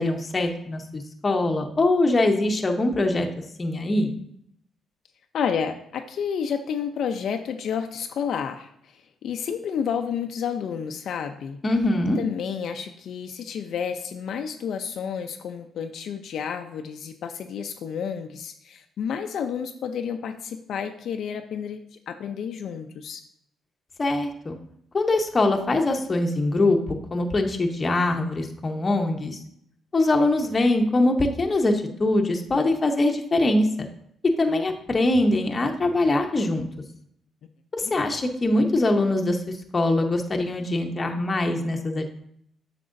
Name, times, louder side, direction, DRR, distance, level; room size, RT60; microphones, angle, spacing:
voice 1, 0.0-3.3 3.6-4.1 11.6-12.2 24.0-24.5 24.9-26.8 27.1-29.4 29.9-33.9 34.4-36.7 37.7-39.4 39.7-42.1, left 2 dB, 30° left, 3 dB, 0.8 m, -23 dB
voice 2, 5.3-11.6 12.2-23.2 37.8-37.9, left 7 dB, 70° left, 6 dB, 0.4 m, -30 dB
7.5 x 6.0 x 2.6 m, 0.70 s
cardioid pair, 90°, 0 cm